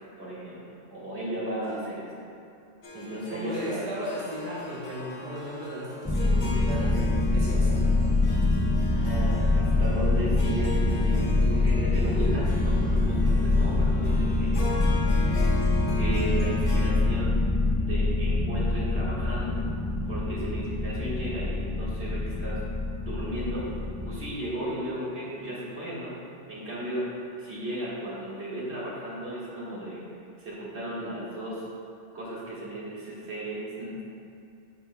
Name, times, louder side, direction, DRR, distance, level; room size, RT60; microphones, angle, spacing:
voice 1, 0.2-0.6 0.9-2.0 2.9-3.8 8.9-14.5 15.9-17.4 17.9-19.6 20.1-22.6 23.0-23.6 24.1-26.1 26.5-27.1 27.4-30.0 30.4-31.6 32.1-34.0, right 1 dB, 70° right, -8 dB, 2.1 m, -35 dB
Harp, 2.8-16.9, left 2 dB, 60° left, 0.9 m, -40 dB
voice 2, 3.3-7.0 7.3-8.2, equal, 50° right, -7 dB, 1.2 m, -36 dB
sound 1, 6.1-24.3, left 2 dB, 20° left, 0.4 m, -25 dB
11.0 x 5.2 x 2.2 m, 2.5 s
omnidirectional pair, 1.2 m